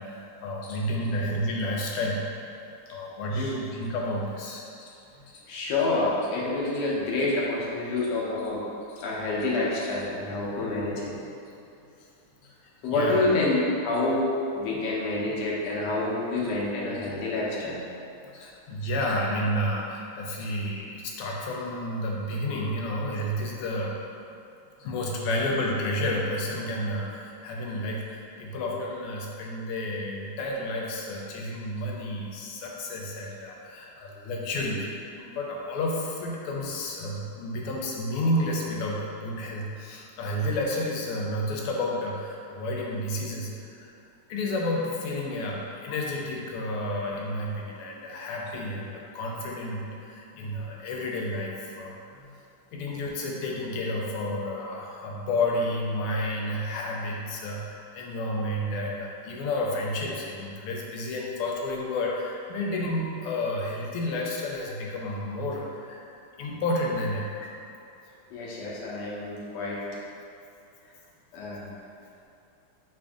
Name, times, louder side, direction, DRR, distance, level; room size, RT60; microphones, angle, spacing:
voice 1, 0.0-2.2 2.9-4.7 12.9-13.2 18.4-24.0 24.8-43.9 44.3-52.0 52.7-66.0 66.4-67.5, left 1 dB, 90° left, -2 dB, 1.5 m, -31 dB
voice 2, 5.5-8.6 9.0-11.1 12.8-17.8 18.3-18.5 20.3-20.4 50.3-50.5 52.1-52.3 52.7-52.9 55.1-55.2 68.3-69.8 71.3-71.7, left 2 dB, 70° left, -5 dB, 1.1 m, -28 dB
3.5 x 2.5 x 3.4 m, 2.7 s
omnidirectional pair, 2.4 m